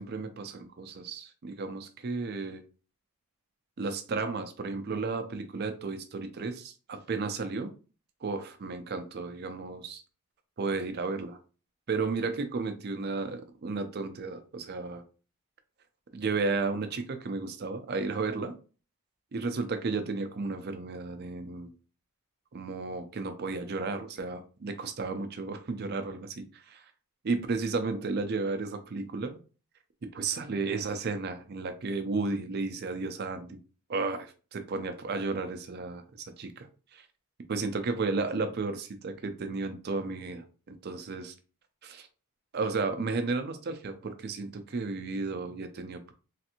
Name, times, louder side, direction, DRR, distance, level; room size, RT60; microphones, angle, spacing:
voice 1, 0.0-2.6 3.8-7.7 8.2-10.0 10.6-11.4 11.9-15.0 16.1-18.5 19.3-21.7 22.5-26.9 27.2-29.4 30.1-33.6 33.9-37.1 37.5-41.3 41.8-42.1 42.5-46.1, right 4 dB, 45° right, 8 dB, 0.4 m, -33 dB
3.2 x 2.5 x 2.8 m, 0.36 s
head